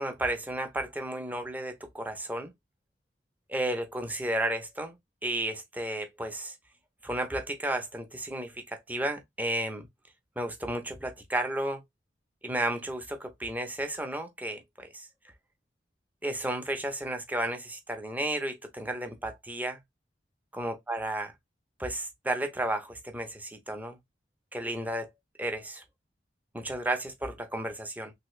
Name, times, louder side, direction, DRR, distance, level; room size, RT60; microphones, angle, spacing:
voice 1, 0.0-2.5 3.5-5.0 5.2-6.5 7.0-9.9 10.4-11.8 12.4-15.1 16.2-19.8 20.5-21.3 21.8-24.0 24.5-25.1 25.4-25.8 26.5-28.1, right 1 dB, 10° right, 0.6 m, -33 dB
3.2 x 2.8 x 3.1 m
head